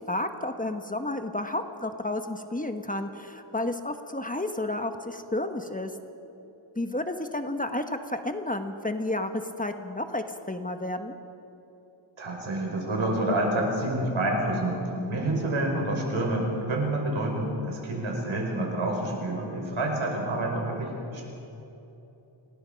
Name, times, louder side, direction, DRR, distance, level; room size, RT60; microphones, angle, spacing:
voice 1, 0.1-5.9 6.8-11.1 15.0-15.3, left 1 dB, 15° left, 7 dB, 1.1 m, -31 dB
voice 2, 12.2-14.8 15.1-21.2, right 1 dB, 85° right, 0 dB, 5.4 m, -28 dB
28.0 x 19.5 x 5.2 m, 3.0 s
wide cardioid pair, 110°, 47 cm